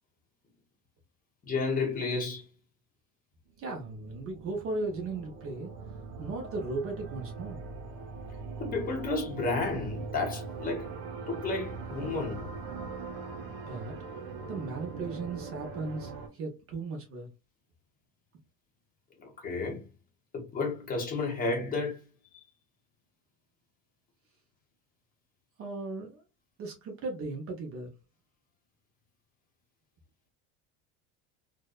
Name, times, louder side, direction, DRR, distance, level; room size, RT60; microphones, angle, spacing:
voice 1, 1.5-2.5 8.6-10.9 11.3-12.5 19.2-19.9 20.3-22.1 22.3-22.4, left 3 dB, 20° left, 0.6 m, -32 dB
sound 1, 3.5-16.3, right 4 dB, 65° right, 0.9 m, -41 dB
voice 2, 3.6-5.7 6.2-7.7 13.7-14.0 14.5-17.3 25.6-26.2 26.6-27.9, right 3 dB, 35° right, 0.5 m, -36 dB
2.6 x 2.1 x 2.2 m
cardioid pair, 165°, 40 cm